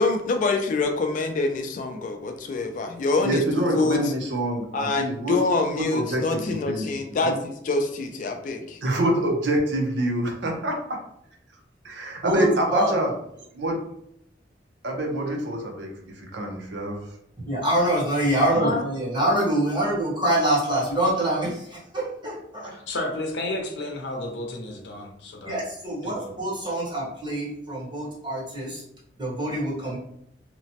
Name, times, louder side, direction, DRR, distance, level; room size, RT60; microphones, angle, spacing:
voice 1, 0.0-4.0 4.7-8.8 18.6-18.8, left 3 dB, 45° left, 5 dB, 0.3 m, -25 dB
voice 2, 3.2-5.4 5.8-7.3 8.8-11.0 11.8-13.2 13.5-13.8 14.8-17.1 18.3-18.5, right 1 dB, 70° right, 1 dB, 0.6 m, -26 dB
voice 3, 12.2-13.0 17.5-22.8 25.4-28.8 29.2-30.0, right 1 dB, 25° right, -7 dB, 1.1 m, -25 dB
voice 4, 22.6-25.6 26.0-26.3, left 1 dB, 80° left, 1 dB, 0.6 m, -32 dB
2.9 x 2.0 x 2.7 m, 0.73 s
head